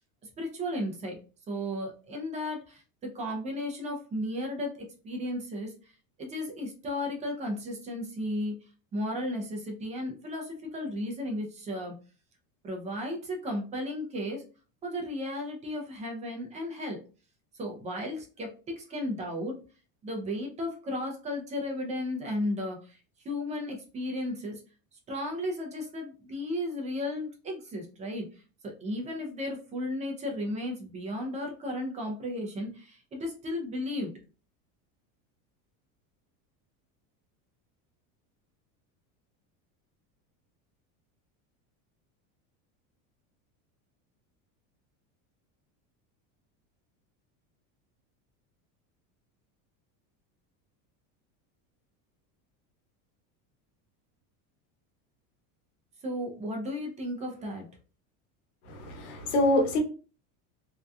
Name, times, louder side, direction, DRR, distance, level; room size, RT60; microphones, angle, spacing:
voice 1, 0.4-1.2 1.5-2.8 3.1-5.9 6.2-8.6 8.9-11.9 12.6-14.4 14.8-17.0 17.5-19.6 20.0-23.0 23.2-24.6 25.1-28.4 28.8-34.1 56.0-57.7, left 1 dB, 15° right, 0.4 m, -34 dB
voice 2, 58.7-59.8, left 1 dB, 85° left, 1.0 m, -25 dB
2.7 x 2.2 x 2.3 m
supercardioid pair, 145°, 42 cm